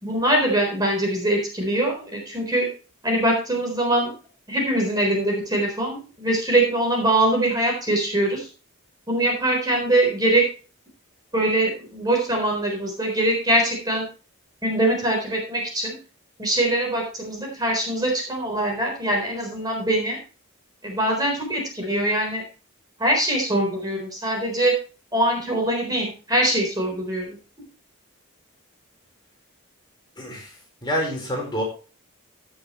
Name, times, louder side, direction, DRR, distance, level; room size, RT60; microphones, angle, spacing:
voice 1, 0.0-2.7 3.0-4.1 4.5-8.5 9.1-10.4 11.3-14.1 14.6-16.0 16.4-20.2 20.8-22.4 23.0-24.7 25.1-27.4, right 1 dB, 20° right, 1 dB, 3.9 m, -23 dB
voice 2, 30.2-31.6, equal, 20° left, -1 dB, 4.4 m, -28 dB
16.0 x 7.3 x 3.1 m, 0.35 s
head